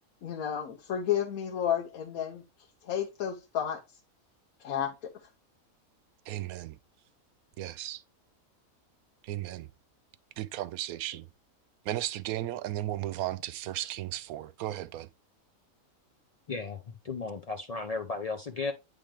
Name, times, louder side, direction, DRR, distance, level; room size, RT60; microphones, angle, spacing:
voice 1, 0.2-2.4 2.9-3.8 4.6-4.9, left 9 dB, 80° left, 1.3 m, -31 dB
voice 2, 6.3-6.8 7.6-8.0 9.2-9.7 10.4-11.3 11.9-15.1, right 14 dB, 85° right, 1.0 m, -35 dB
voice 3, 16.5-18.7, left 4 dB, 65° left, 0.3 m, -35 dB
8.7 x 3.4 x 3.3 m
omnidirectional pair, 1.5 m